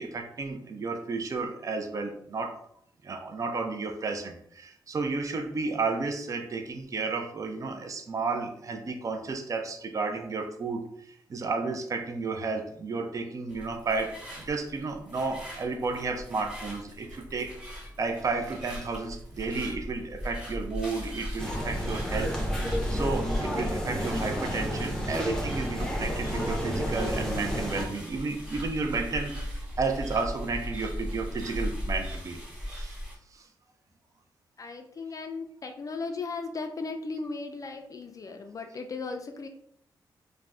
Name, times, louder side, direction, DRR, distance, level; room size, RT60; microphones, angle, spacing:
voice 1, 0.0-2.6 3.0-10.8 11.3-17.5 18.0-22.3 22.9-32.4 32.7-32.9 33.3-33.5, right 4 dB, 40° right, 5 dB, 0.4 m, -32 dB
sound 1, 13.5-33.2, equal, 10° right, 1.2 m, -37 dB
sound 2, 21.4-27.8, equal, 10° left, 0.6 m, -31 dB
voice 2, 34.6-39.5, left 4 dB, 40° left, 5 dB, 0.3 m, -36 dB
2.4 x 2.0 x 3.4 m, 0.68 s
cardioid pair, 80°, 8 cm